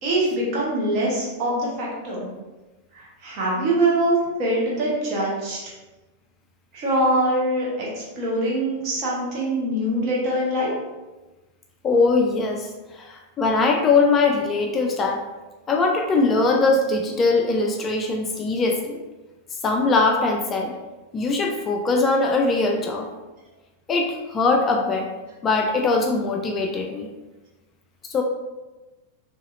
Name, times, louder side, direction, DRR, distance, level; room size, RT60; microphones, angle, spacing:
voice 1, 0.0-2.3 2.9-5.6 6.7-10.7, right 1 dB, 40° right, -5 dB, 1.0 m, -23 dB
voice 2, 11.8-12.7 12.9-15.2 15.7-19.0 19.6-20.7 21.1-23.1 23.9-25.1 25.4-27.1 28.1-28.2, left 3 dB, 25° left, 1 dB, 0.3 m, -21 dB
2.8 x 2.7 x 2.5 m, 1.1 s
figure-of-eight pair, 90°, 0 cm